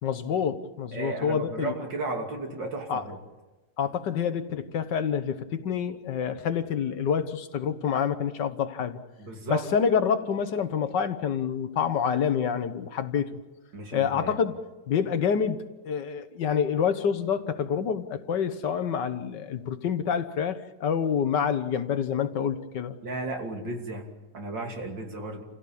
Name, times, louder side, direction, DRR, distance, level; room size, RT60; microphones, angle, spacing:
voice 1, 0.0-1.7 2.9-3.0 3.8-9.0 9.5-13.4 13.9-14.5 14.9-15.6 15.9-23.0, left 7 dB, 75° left, 10 dB, 1.8 m, -27 dB
voice 2, 0.9-3.2 9.2-9.7 13.7-14.4 23.0-24.1 24.3-25.4, right 2 dB, 80° right, 2 dB, 3.6 m, -34 dB
28.5 x 16.5 x 8.7 m, 1.2 s
omnidirectional pair, 1.9 m